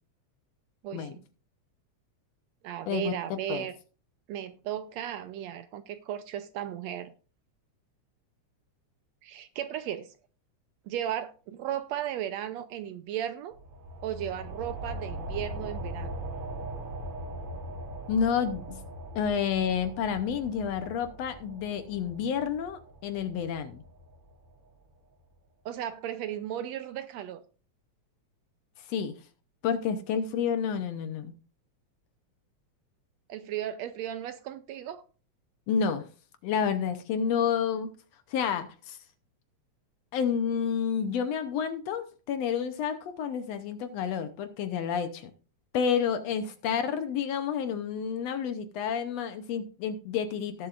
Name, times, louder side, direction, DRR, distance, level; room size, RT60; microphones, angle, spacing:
voice 1, 0.8-1.3 2.6-3.8 4.3-7.1 9.2-10.1 10.9-13.5 14.0-16.1 25.7-27.4 33.3-35.0, right 10 dB, 75° right, 1.7 m, -35 dB
voice 2, 2.9-3.7 18.1-18.8 19.2-23.8 28.9-29.2 29.6-31.3 35.7-36.1 36.4-37.9 38.3-39.0 40.1-45.3 45.7-50.7, left 7 dB, 70° left, 1.8 m, -30 dB
sound 1, 13.5-24.7, right 1 dB, 55° right, 2.3 m, -40 dB
17.5 x 7.3 x 2.5 m
omnidirectional pair, 3.4 m